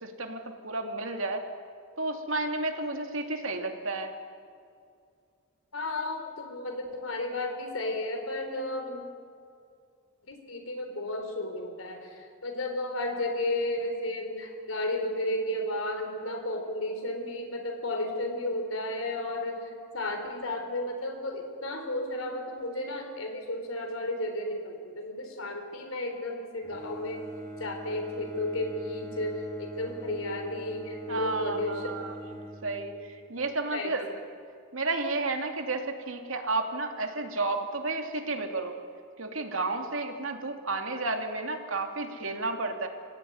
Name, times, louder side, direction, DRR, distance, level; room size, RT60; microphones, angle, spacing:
voice 1, 0.0-1.4 2.0-4.1 31.1-32.1 32.6-32.9 33.3-34.1 34.7-38.7 39.2-42.9, right 3 dB, 70° right, 4 dB, 2.7 m, -32 dB
voice 2, 5.7-9.0 10.3-27.2 27.6-31.9 33.7-34.0, left 1 dB, 80° left, 4 dB, 3.8 m, -33 dB
Bowed string instrument, 26.6-33.3, equal, 15° left, 4.2 m, -43 dB
25.5 x 17.0 x 9.5 m, 2.3 s
head